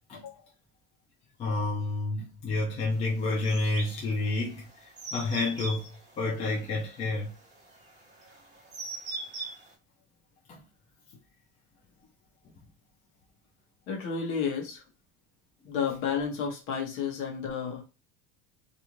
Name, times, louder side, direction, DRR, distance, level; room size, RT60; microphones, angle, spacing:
voice 1, 1.4-7.3 10.5-10.6, left 2 dB, 20° left, 0.4 m, -30 dB
sound 1, 3.4-9.7, right 3 dB, 25° right, 0.9 m, -40 dB
voice 2, 13.9-14.8 15.6-17.8, left 6 dB, 45° left, 0.9 m, -31 dB
2.5 x 2.5 x 3.0 m
cardioid pair, 175°, 30 cm